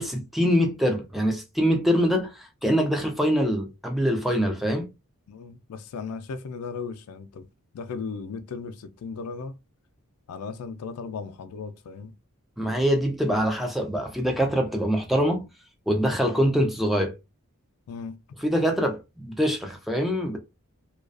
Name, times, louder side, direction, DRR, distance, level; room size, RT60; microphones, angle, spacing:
voice 1, 0.0-4.9 12.6-15.5 15.9-17.1 18.4-20.4, equal, ahead, 0.3 m, -24 dB
voice 2, 5.3-7.5 7.7-9.5 10.3-12.1 17.9-18.2, left 5 dB, 85° left, 0.4 m, -36 dB
2.3 x 2.2 x 2.4 m
head